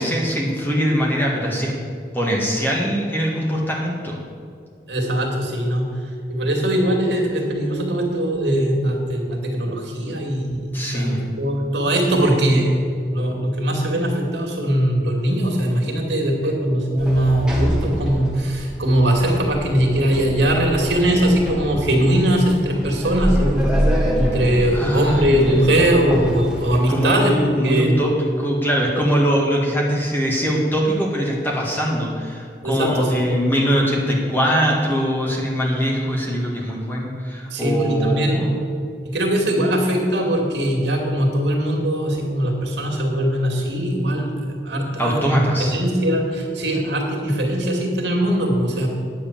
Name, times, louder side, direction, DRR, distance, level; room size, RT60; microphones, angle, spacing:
voice 1, 0.0-1.7 2.1-4.2 10.7-11.2 24.7-25.7 26.9-38.6 45.0-45.8, equal, 10° left, -2 dB, 1.9 m, -22 dB
voice 2, 4.9-5.9 6.3-23.7 24.2-27.3 27.6-28.0 32.6-33.3 37.5-38.5 39.0-44.3 44.6-45.4 45.7-48.9, right 1 dB, 90° right, 1 dB, 2.4 m, -20 dB
Sliding door, 17.0-27.1, equal, 5° right, 1.7 m, -26 dB
10.0 x 8.1 x 7.4 m, 2.3 s
head